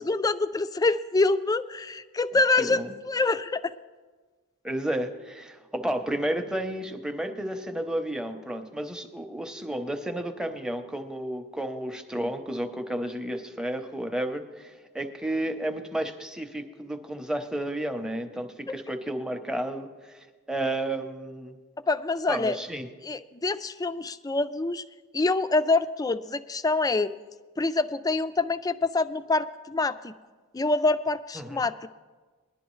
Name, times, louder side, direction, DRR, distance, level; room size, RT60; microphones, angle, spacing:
voice 1, 0.0-3.7 18.7-18.8 21.9-22.6 23.0-24.8 25.1-27.1 27.6-30.1 30.5-31.9, left 3 dB, 15° left, 12 dB, 0.4 m, -26 dB
voice 2, 2.6-2.9 4.6-21.6 22.3-22.9 31.4-31.6, right 1 dB, 5° right, 6 dB, 0.7 m, -32 dB
21.0 x 11.5 x 3.1 m, 1.4 s
head